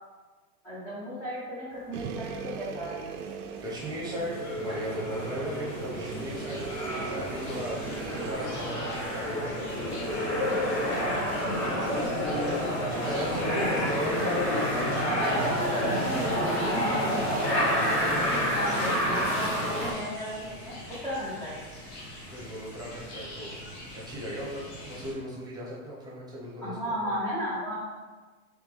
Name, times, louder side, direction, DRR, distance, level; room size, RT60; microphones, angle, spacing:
voice 1, 0.6-3.0 10.5-10.6 10.8-13.8 14.2-14.3 14.8-20.7 21.0-21.6 26.6-27.7, equal, 5° left, -9 dB, 0.5 m, -36 dB
sound 1, 1.9-8.3, right 7 dB, 80° right, 0.6 m, -39 dB
voice 2, 3.6-7.8 8.1-9.5 13.0-15.4 16.9-17.0 22.2-23.6 23.9-27.1, equal, 10° right, -5 dB, 0.9 m, -37 dB
sound 2, 3.8-19.9, equal, 25° left, 0.9 m, -29 dB
sound 3, 6.0-25.1, left 1 dB, 50° left, 1.2 m, -44 dB
3.6 x 3.3 x 3.3 m, 1.3 s
hypercardioid pair, 135°, 45 cm